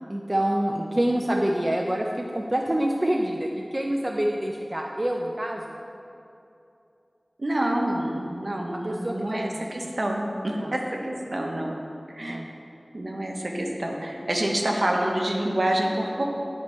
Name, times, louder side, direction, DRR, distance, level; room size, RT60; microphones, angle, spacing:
voice 1, 0.0-5.8 8.7-9.9 10.6-10.7 12.3-12.5, right 1 dB, 30° right, 0 dB, 0.4 m, -27 dB
voice 2, 7.4-11.7 12.2-12.4 12.9-16.2, right 1 dB, 60° right, 0 dB, 0.8 m, -27 dB
10.0 x 4.3 x 3.1 m, 2.7 s
wide cardioid pair, 55°, 0 cm